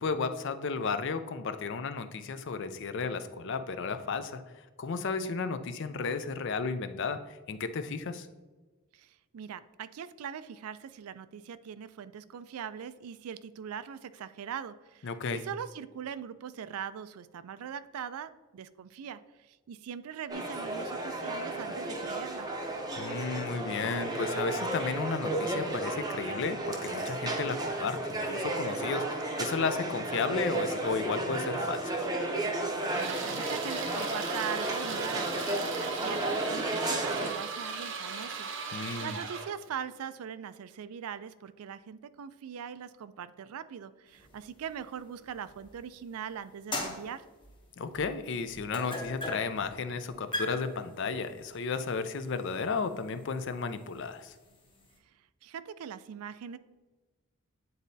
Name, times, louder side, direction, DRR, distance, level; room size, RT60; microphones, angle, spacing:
voice 1, 0.0-4.4 4.8-8.3 15.0-15.4 22.9-32.0 38.7-39.2 47.8-54.3, left 4 dB, 55° left, 10 dB, 0.4 m, -33 dB
voice 2, 8.9-22.5 33.0-47.2 55.4-56.6, right 8 dB, 80° right, 14 dB, 0.3 m, -41 dB
sound 1, 20.3-37.3, right 2 dB, 15° right, 0.6 m, -33 dB
sound 2, 32.9-39.6, right 5 dB, 55° right, 0.7 m, -38 dB
sound 3, 44.2-46.0 46.5-55.0, left 1 dB, 20° left, 0.8 m, -41 dB
9.3 x 4.1 x 2.7 m, 1.3 s
head